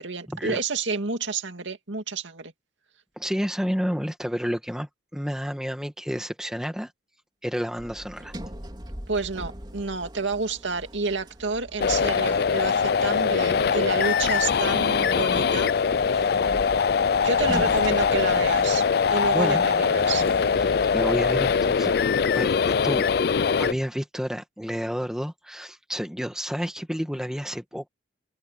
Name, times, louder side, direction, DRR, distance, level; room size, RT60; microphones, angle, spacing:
voice 1, 0.0-2.5 9.1-15.7 16.1-16.4 17.2-18.8 19.1-20.3, right 4 dB, 85° right, 2.3 m, -29 dB
voice 2, 3.2-6.9 7.4-8.3 19.3-19.6 20.6-22.0 22.3-23.0 23.6-27.9, equal, 5° right, 1.9 m, -30 dB
Sliding door, 7.8-12.6 14.2-19.2, equal, 25° right, 4.0 m, -40 dB
sound 1, 11.8-23.7, left 6 dB, 55° left, 0.4 m, -22 dB
sound 2, 19.6-22.9, equal, 50° right, 3.4 m, -43 dB
open air
head